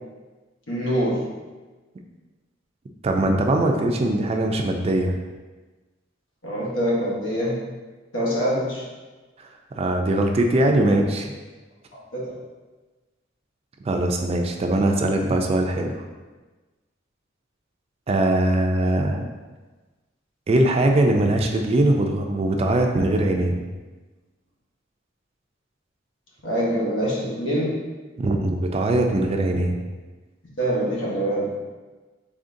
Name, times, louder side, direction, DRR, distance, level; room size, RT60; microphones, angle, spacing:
voice 1, 0.7-1.2 6.4-7.6 8.1-8.8 12.1-12.2 26.4-27.8 30.6-31.5, equal, 85° left, -5 dB, 1.1 m, -24 dB
voice 2, 3.0-5.2 9.7-11.3 13.9-15.9 18.1-19.3 20.5-23.6 28.2-29.8, right 1 dB, 30° right, 3 dB, 0.3 m, -21 dB
3.8 x 3.4 x 2.5 m, 1.3 s
head